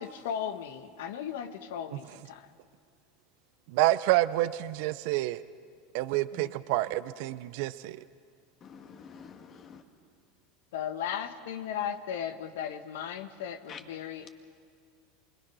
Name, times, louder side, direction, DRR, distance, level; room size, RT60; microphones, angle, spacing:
voice 1, 0.0-2.5 6.3-6.5 10.7-14.3, left 9 dB, 75° left, 10 dB, 1.2 m, -36 dB
voice 2, 3.7-5.4 5.9-8.0, right 16 dB, 65° right, 15 dB, 0.6 m, -28 dB
voice 3, 8.6-9.8 13.7-13.8, left 6 dB, 40° left, 5 dB, 2.3 m, -47 dB
28.5 x 21.5 x 6.2 m, 2.1 s
hypercardioid pair, 95°, 0 cm